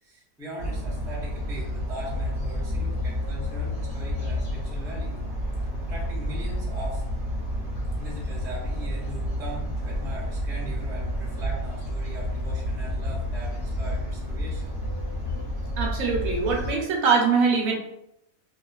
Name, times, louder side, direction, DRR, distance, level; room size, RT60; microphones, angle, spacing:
voice 1, 0.0-5.2 5.8-7.0 8.0-14.7, right 1 dB, 5° right, -6 dB, 0.3 m, -40 dB
sound 1, 0.6-16.7, equal, 45° left, 0.8 m, -30 dB
voice 2, 15.8-17.7, right 5 dB, 75° right, 0 dB, 1.0 m, -23 dB
2.7 x 2.4 x 2.2 m, 0.81 s
omnidirectional pair, 1.5 m